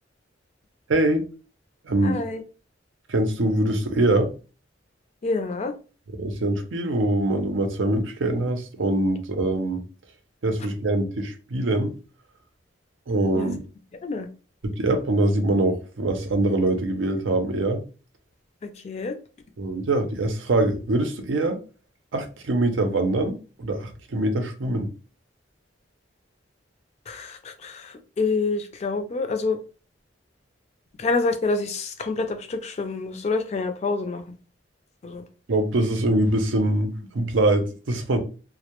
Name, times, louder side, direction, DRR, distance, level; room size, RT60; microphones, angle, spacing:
voice 1, 0.9-1.2 1.8-2.2 3.1-4.3 6.1-9.8 10.4-11.9 13.1-13.6 14.6-17.8 19.6-21.6 22.1-24.9 35.5-38.2, right 2 dB, 85° right, 0.5 m, -23 dB
voice 2, 2.0-2.4 5.2-5.7 13.3-13.6 14.0-14.3 18.6-19.1 27.1-29.6 31.0-34.2 35.0-35.2, left 3 dB, 35° left, 0.3 m, -27 dB
2.1 x 2.0 x 2.9 m
head